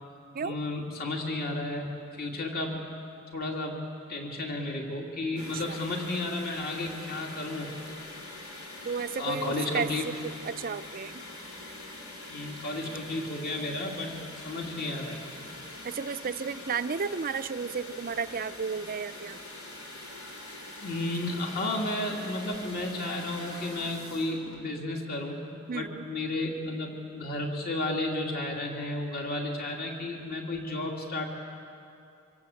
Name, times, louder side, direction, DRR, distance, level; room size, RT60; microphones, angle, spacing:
voice 1, 0.4-1.9 2.1-2.8 3.3-3.7 4.1-8.0 9.1-10.1 12.3-14.1 14.4-15.2 20.8-25.4 25.7-31.2, left 2 dB, 45° left, 0 dB, 2.8 m, -33 dB
sound 1, 5.4-24.7, left 2 dB, 85° left, 4.4 m, -44 dB
voice 2, 8.9-9.9 10.5-11.1 16.0-19.4 25.7-26.0, right 5 dB, 45° right, 11 dB, 0.5 m, -32 dB
25.5 x 25.5 x 8.5 m, 2.6 s
head